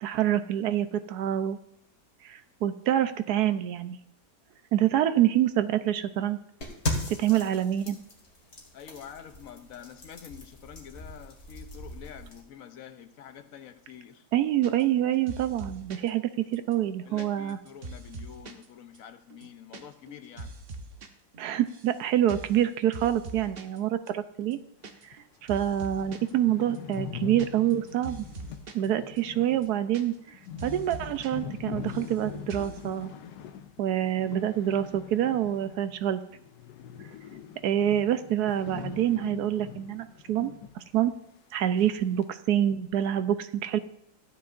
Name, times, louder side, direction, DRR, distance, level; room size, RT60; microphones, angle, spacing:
voice 1, 0.0-1.6 2.2-4.0 4.7-6.4 7.1-8.0 14.3-17.6 21.4-24.6 25.4-28.3 28.7-30.2 30.6-33.1 33.8-36.2 37.6-41.1 41.5-43.8, right 11 dB, 70° right, 1.1 m, -26 dB
sound 1, 6.6-12.4, left 1 dB, 40° left, 2.4 m, -38 dB
voice 2, 8.7-14.2 17.1-20.5, left 9 dB, 60° left, 1.0 m, -47 dB
sound 2, 14.6-15.0 15.3-16.1 16.5-18.7 18.9-19.0 19.3-19.8 20.1-21.1 21.3-22.0 22.3-22.6 22.9-23.8 24.1-24.2 24.4-25.2 25.5-26.3 26.7-28.9 29.2-29.3 29.5-30.3 30.6-31.3 31.6-32.2 32.5-32.8, right 2 dB, 45° right, 0.8 m, -43 dB
sound 3, 25.1-25.2 25.5-25.6 25.8-36.0 36.3-40.8 41.1-41.2 41.8-42.2, left 8 dB, 90° left, 1.3 m, -42 dB
14.0 x 9.5 x 2.6 m
omnidirectional pair, 1.8 m